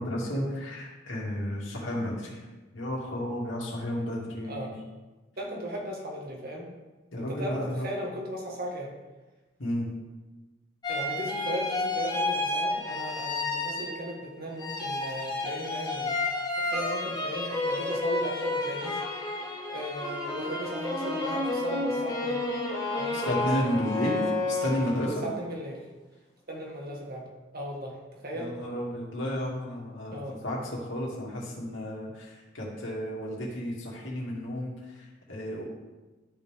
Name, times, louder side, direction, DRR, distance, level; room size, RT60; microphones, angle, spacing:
voice 1, 0.0-2.4 2.7-4.7 7.1-7.9 9.6-9.9 23.1-25.2 28.3-35.6, equal, 85° left, -3 dB, 2.6 m, -32 dB
voice 2, 5.4-6.7 7.2-7.6 7.8-8.9 10.9-16.2 16.5-19.0 19.7-22.4 23.0-23.2 25.2-25.8 26.5-27.2 27.5-28.5 30.1-30.4, right 1 dB, 55° right, -1 dB, 1.9 m, -37 dB
sound 1, 10.8-14.2 14.6-25.2, left 2 dB, 20° left, 1.7 m, -31 dB
12.5 x 5.4 x 3.7 m, 1.2 s
head